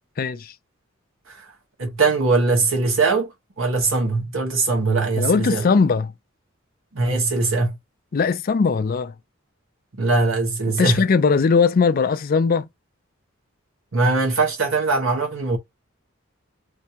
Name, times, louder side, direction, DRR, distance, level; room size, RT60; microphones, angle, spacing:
voice 1, 0.2-0.5 5.2-6.1 8.1-9.1 10.7-12.7, left 5 dB, 45° left, 0.4 m, -19 dB
voice 2, 1.8-5.6 6.9-7.8 10.0-11.0 13.9-15.6, right 3 dB, 80° right, 1.2 m, -21 dB
3.3 x 2.7 x 2.9 m
head